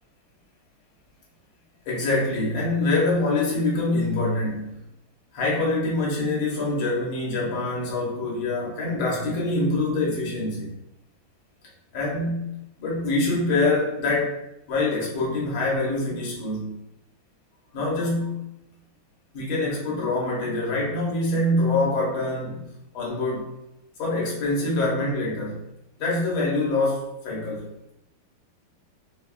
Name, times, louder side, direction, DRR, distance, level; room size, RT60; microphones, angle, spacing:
voice 1, 1.9-4.7 5.3-10.7 11.9-12.5 12.8-14.4 14.7-16.8 17.7-18.4 19.3-22.6 22.9-23.6 24.0-25.6 26.0-27.7, left 2 dB, 75° left, -5 dB, 1.8 m, -25 dB
4.4 x 2.3 x 2.3 m, 0.87 s
omnidirectional pair, 2.3 m